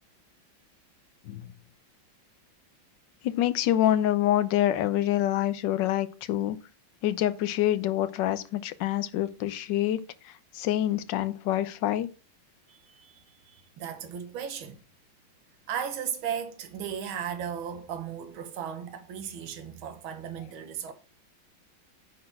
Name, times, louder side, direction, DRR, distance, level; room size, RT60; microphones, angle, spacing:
voice 1, 3.2-6.6 7.0-10.0 10.5-12.1, left 12 dB, 70° left, 1.3 m, -26 dB
voice 2, 12.7-14.8 15.7-20.9, right 8 dB, 80° right, 1.9 m, -36 dB
9.4 x 4.3 x 5.8 m
omnidirectional pair, 2.2 m